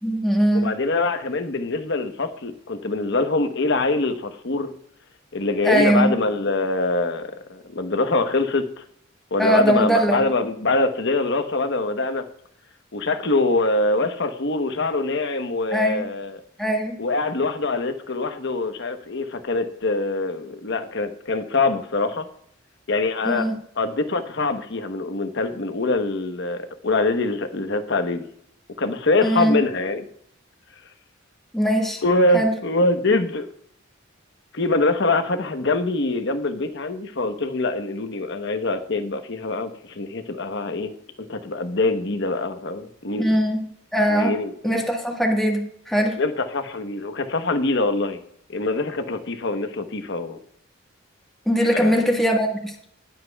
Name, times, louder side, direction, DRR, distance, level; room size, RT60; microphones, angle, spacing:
voice 1, 0.0-0.7 5.6-6.1 9.4-10.2 15.7-16.1 16.6-17.0 23.2-23.6 29.2-29.6 31.5-32.0 32.3-32.5 43.2-44.4 44.6-46.2 51.5-52.7, equal, ahead, 0 dB, 1.4 m, -21 dB
voice 2, 0.5-4.7 5.3-8.8 9.3-12.2 12.9-16.4 17.0-22.3 22.9-23.5 23.8-28.3 28.8-30.1 32.0-33.5 34.5-43.4 44.1-44.8 46.2-48.2 48.5-50.4 51.7-52.0, left 2 dB, 60° left, 7 dB, 1.0 m, -24 dB
19.5 x 7.6 x 2.3 m, 0.67 s
head